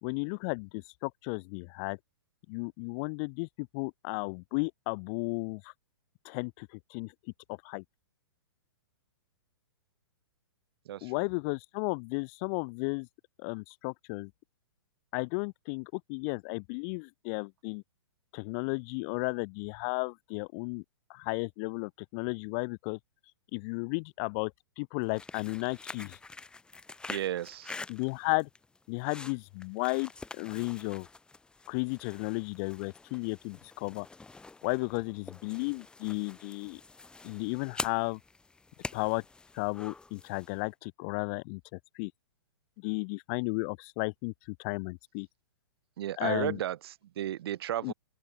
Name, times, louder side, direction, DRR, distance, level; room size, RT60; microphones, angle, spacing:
voice 1, 0.0-2.0 2.5-5.7 6.2-7.1 7.5-7.8 11.0-13.1 13.4-14.3 15.1-17.8 18.3-20.8 21.1-23.0 23.5-26.2 27.9-28.5 28.9-31.1 31.7-34.1 34.6-36.8 37.2-38.2 38.9-39.2 39.5-42.1 42.8-45.3 46.2-46.6 47.8-47.9, left 34 dB, 35° left, 0.4 m, -34 dB
sound 1, 25.0-40.6, left 3 dB, 5° left, 0.9 m, -46 dB
voice 2, 27.1-27.7 46.0-47.9, right 12 dB, 65° right, 0.5 m, -34 dB
open air
hypercardioid pair, 140°, 14 cm